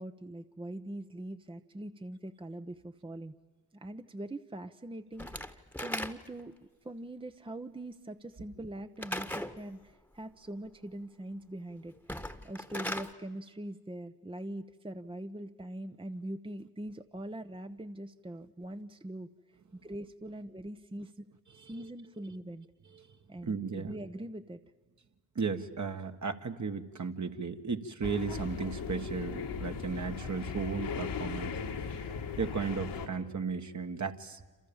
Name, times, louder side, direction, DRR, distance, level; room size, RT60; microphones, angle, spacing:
voice 1, 0.0-3.3 3.7-6.6 6.8-11.9 12.4-19.3 19.8-21.2 21.5-22.7 23.3-24.6, right 1 dB, 15° right, 8 dB, 0.9 m, -42 dB
Slam / Wood, 5.2-6.5 9.0-9.6 12.0-13.1, left 1 dB, 5° left, 1.5 m, -38 dB
voice 2, 23.4-24.0 25.4-32.1 32.4-34.4, right 5 dB, 45° right, 6 dB, 1.8 m, -35 dB
sound 1, 28.0-33.1, left 6 dB, 80° left, 2.4 m, -38 dB
28.0 x 27.0 x 7.3 m, 1.3 s
supercardioid pair, 50°, 40 cm